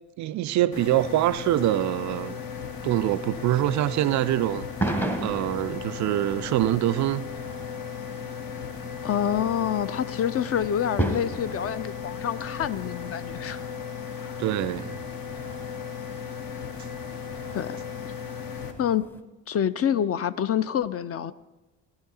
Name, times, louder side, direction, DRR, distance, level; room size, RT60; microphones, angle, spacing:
voice 1, 0.2-2.4 2.8-4.7 5.2-7.2 14.4-15.0, right 14 dB, 45° right, 0.4 m, -24 dB
sound 1, 0.7-18.7, left 7 dB, 55° left, 1.4 m, -36 dB
sound 2, 1.5-19.2, right 1 dB, 5° left, 1.2 m, -38 dB
voice 2, 9.0-13.7 14.1-14.4 17.5-17.8 18.0-18.1 18.8-19.1 19.5-21.3, left 9 dB, 35° left, 0.5 m, -27 dB
16.5 x 9.8 x 4.1 m
figure-of-eight pair, 40°, 42 cm